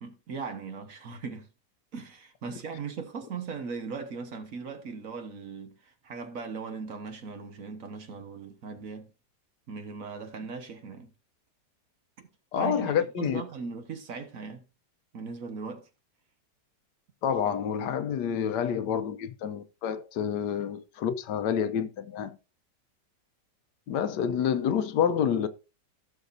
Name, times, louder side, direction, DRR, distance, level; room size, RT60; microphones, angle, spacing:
voice 1, 0.0-1.5 1.9-9.1 9.7-11.1 12.6-14.6 15.1-15.9, right 5 dB, 55° right, 1.5 m, -39 dB
voice 2, 12.5-13.4 17.2-22.4 23.9-25.5, left 8 dB, 80° left, 1.3 m, -28 dB
16.0 x 6.5 x 2.6 m
omnidirectional pair, 1.9 m